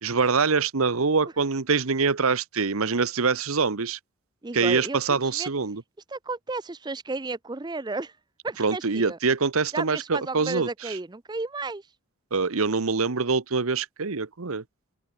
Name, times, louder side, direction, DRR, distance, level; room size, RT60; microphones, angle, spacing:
voice 1, 0.0-4.0 4.5-5.8 8.6-11.0 12.3-14.6, right 4 dB, 75° right, 1.0 m, -24 dB
voice 2, 4.4-5.5 6.1-8.2 8.4-9.2 9.7-11.9, right 3 dB, 20° right, 0.5 m, -33 dB
open air
head